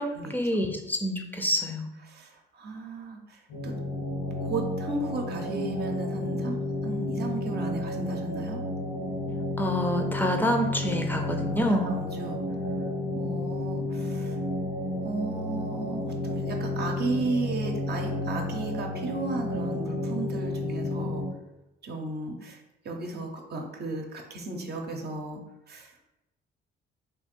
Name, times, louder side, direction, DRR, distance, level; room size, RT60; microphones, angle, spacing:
voice 1, 0.0-1.9 9.6-12.0, equal, 10° left, 4 dB, 0.5 m, -27 dB
voice 2, 2.1-3.7 4.4-6.5 6.8-8.6 11.7-12.4 13.1-14.4 15.0-21.2 21.8-22.6 22.8-25.4 25.7-26.1, right 3 dB, 55° right, 2 dB, 0.7 m, -34 dB
sound 1, 3.5-21.3, left 1 dB, 80° left, 1.0 m, -31 dB
3.4 x 2.5 x 4.3 m, 0.97 s
cardioid pair, 90°, 20 cm